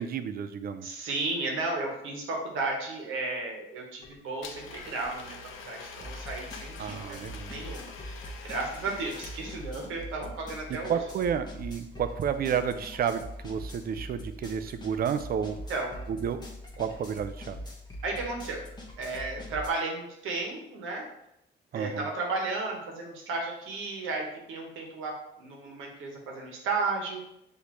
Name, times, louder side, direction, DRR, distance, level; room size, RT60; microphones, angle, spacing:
voice 1, 0.0-0.9 6.8-7.6 10.9-15.6 16.1-16.4 16.8-17.6 21.7-22.1, right 7 dB, 50° right, 10 dB, 0.4 m, -31 dB
voice 2, 0.8-5.4 5.6-7.2 7.5-11.0 15.7-15.9 18.0-18.6 19.0-21.0 21.7-27.2, right 3 dB, 90° right, 0 dB, 1.1 m, -34 dB
sound 1, 4.0-4.2 4.5-19.7, equal, 20° left, 1.0 m, -43 dB
Domestic sounds home sounds, 4.4-10.1, left 5 dB, 85° left, 0.5 m, -45 dB
6.2 x 2.7 x 3.0 m, 0.83 s
cardioid pair, 90°, 20 cm